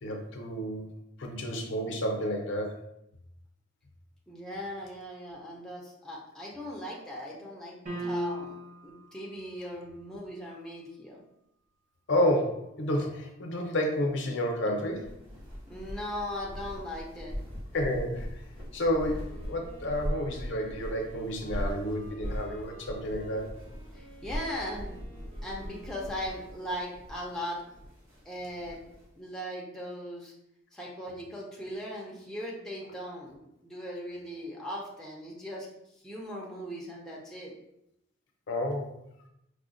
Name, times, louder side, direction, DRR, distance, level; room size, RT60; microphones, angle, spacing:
voice 1, 0.0-0.9 1.2-2.8 12.1-15.1 17.7-18.4 18.7-23.5 38.5-38.9, left 1 dB, 60° left, 2 dB, 0.6 m, -30 dB
voice 2, 4.3-7.7 8.0-8.6 8.8-11.2 15.7-17.4 23.9-27.6 28.2-28.8 29.2-30.3 30.7-35.7 36.0-37.5, equal, 5° left, -4 dB, 0.5 m, -39 dB
sound 1, 7.9-8.9, equal, 40° right, 0.9 m, -34 dB
sound 2, 14.9-29.1, equal, 85° right, 1.3 m, -40 dB
Wind instrument woodwind instrument, 19.1-26.9, right 1 dB, 70° right, 1.0 m, -54 dB
4.7 x 2.1 x 2.5 m, 0.81 s
head